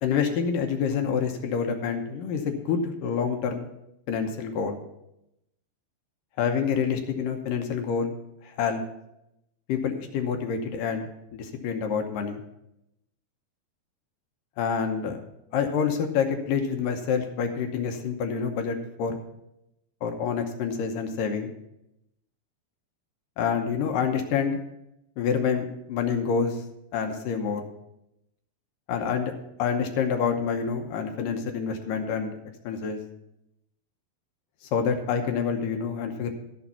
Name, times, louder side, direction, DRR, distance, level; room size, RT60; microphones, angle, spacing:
voice 1, 0.0-3.7 4.1-4.8 6.4-8.1 8.4-8.8 9.7-12.4 14.6-15.2 15.5-19.2 20.0-21.5 23.4-24.6 25.2-26.6 26.9-27.6 28.9-29.3 29.6-32.4 32.6-33.0 34.7-36.3, left 6 dB, 70° left, 5 dB, 2.3 m, -27 dB
12.5 x 7.1 x 5.6 m, 0.83 s
omnidirectional pair, 4.6 m